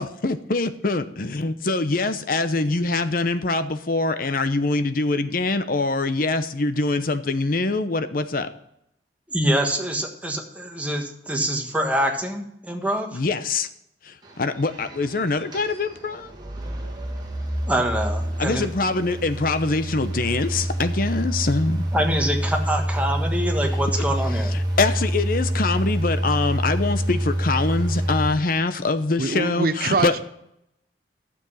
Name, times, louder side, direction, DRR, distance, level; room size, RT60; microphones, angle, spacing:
voice 1, 0.0-8.5 13.1-13.7 14.0-16.3 18.4-21.8 24.0-24.1 24.3-30.1, left 3 dB, 55° left, 0.8 m, -24 dB
voice 2, 9.3-13.2 17.7-18.7 21.9-24.5, right 1 dB, 10° right, 1.4 m, -25 dB
sound 1, 14.2-28.3, right 1 dB, 25° right, 2.4 m, -27 dB
voice 3, 29.2-30.2, right 3 dB, 55° right, 0.8 m, -24 dB
12.0 x 7.3 x 5.5 m
head